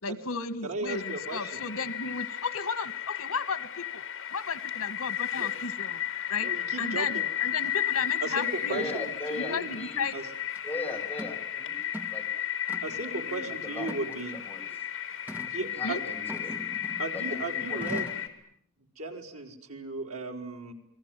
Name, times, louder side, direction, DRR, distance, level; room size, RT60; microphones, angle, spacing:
voice 1, 0.0-4.0 4.3-6.0 6.3-6.5 6.8-9.1 9.5-10.1 15.8-16.0, left 5 dB, 85° left, 14 dB, 1.9 m, -34 dB
voice 2, 0.6-1.6 5.4-5.5 6.4-7.2 8.2-9.8 10.1-10.2 12.8-14.4 15.5-16.0 17.0-18.1 19.0-20.7, right 3 dB, 75° right, 3 dB, 4.6 m, -36 dB
sound 1, 0.9-18.3, left 10 dB, 60° left, 4.1 m, -34 dB
voice 3, 8.7-10.0 10.6-11.8 12.1-12.2 12.8-13.9 14.3-14.7 15.6-16.6 17.1-18.1, left 2 dB, 10° left, -2 dB, 6.8 m, -39 dB
sound 2, 10.6-10.7 11.2-11.4 11.8-12.2 12.7-13.1 13.8-14.5 15.3-15.6 16.3-17.2 17.8-18.3, equal, 10° right, 1.9 m, -41 dB
29.5 x 21.0 x 9.3 m, 0.71 s
head